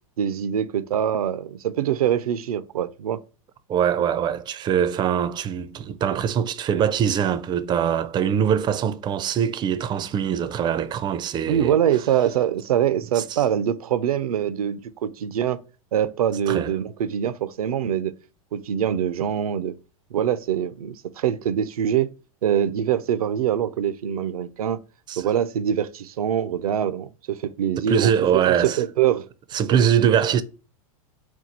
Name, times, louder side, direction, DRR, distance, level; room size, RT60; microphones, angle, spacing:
voice 1, 0.2-3.2 11.5-15.6 15.9-18.1 18.5-19.7 20.1-22.1 22.4-24.8 25.2-29.3, right 10 dB, 85° right, 0.4 m, -24 dB
voice 2, 3.7-11.8 13.2-13.3 16.5-16.7 25.1-25.2 27.9-28.8 29.5-30.4, right 8 dB, 25° right, 0.4 m, -22 dB
4.4 x 2.3 x 3.9 m
hypercardioid pair, 110°, 18 cm